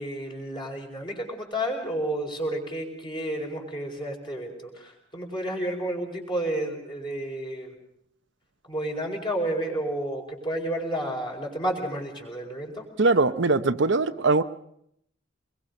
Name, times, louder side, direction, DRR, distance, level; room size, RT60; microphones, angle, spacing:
voice 1, 0.0-7.7 8.7-12.9, right 1 dB, 25° left, 1 dB, 4.9 m, -31 dB
voice 2, 13.0-14.4, right 3 dB, 60° right, 10 dB, 0.8 m, -21 dB
24.5 x 22.0 x 5.4 m, 0.71 s
head